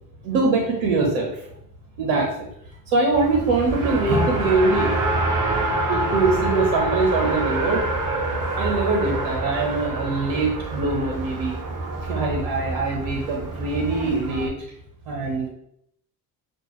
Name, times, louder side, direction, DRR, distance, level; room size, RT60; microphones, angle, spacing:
voice 1, 0.2-1.5 2.0-2.5 2.9-5.0 5.9-7.8 8.5-11.6 12.0-14.5 15.1-15.5, right 3 dB, 80° right, 0 dB, 0.9 m, -23 dB
Race car auto racing, 3.1-14.5, right 2 dB, 40° right, 1.1 m, -26 dB
6.1 x 2.4 x 3.0 m, 0.72 s
hypercardioid pair, 50°, 50 cm